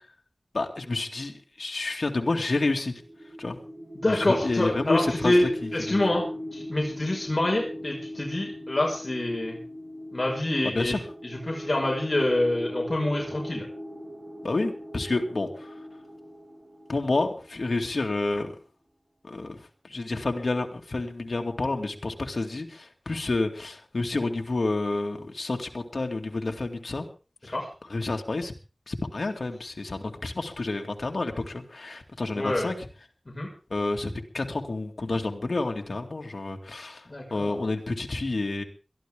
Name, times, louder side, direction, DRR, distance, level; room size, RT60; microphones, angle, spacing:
voice 1, 0.5-1.3 1.6-2.9 3.4-3.6 4.1-6.0 10.6-11.0 14.4-15.5 16.9-18.5 19.2-19.6 19.8-27.1 27.5-27.6 27.9-28.5 28.9-32.7 33.7-37.0 37.3-38.6, left 2 dB, 90° left, 2 dB, 2.3 m, -29 dB
sound 1, 2.9-17.8, equal, 65° right, 6.3 m, -39 dB
voice 2, 3.9-6.3 6.5-9.6 10.1-10.9 11.2-13.6 27.5-27.7 32.3-32.7 33.3-33.5 37.1-37.6, left 1 dB, 45° left, -2 dB, 5.8 m, -26 dB
22.5 x 14.0 x 3.7 m, 0.35 s
wide cardioid pair, 40°, 0 cm